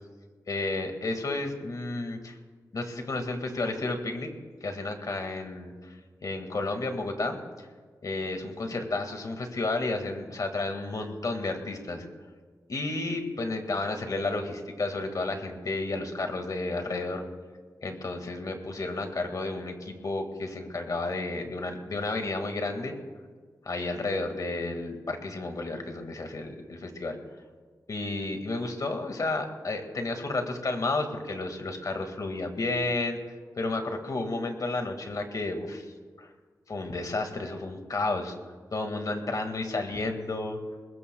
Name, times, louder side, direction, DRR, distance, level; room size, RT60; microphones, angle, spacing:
voice 1, 0.5-2.4 2.7-4.3 4.6-6.0 6.2-7.7 8.0-12.1 12.7-17.2 17.8-23.0 23.7-27.2 27.9-33.2 33.6-36.3 36.7-38.3 38.7-40.6, left 2 dB, 55° left, 5 dB, 1.9 m, -32 dB
21.5 x 21.0 x 2.3 m, 1.5 s
wide cardioid pair, 90°, 7 cm